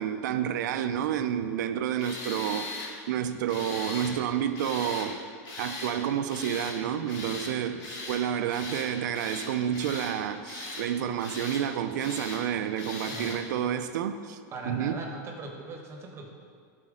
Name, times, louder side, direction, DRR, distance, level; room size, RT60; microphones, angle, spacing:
voice 1, 0.0-2.7 3.1-5.2 5.6-14.4 14.7-15.0, right 9 dB, 80° right, 0.5 m, -30 dB
Tools, 2.0-2.9 3.5-4.1 4.6-5.1 5.4-6.0 6.3-6.8 7.1-7.5 7.8-8.2 8.5-8.9 9.1-10.1 10.4-10.9 11.2-11.6 12.0-12.4 12.8-13.4, left 3 dB, 45° left, 1.6 m, -39 dB
voice 2, 13.1-13.5 14.5-16.3, right 2 dB, 25° right, 1.0 m, -40 dB
10.5 x 4.2 x 3.7 m
supercardioid pair, 140°, 10 cm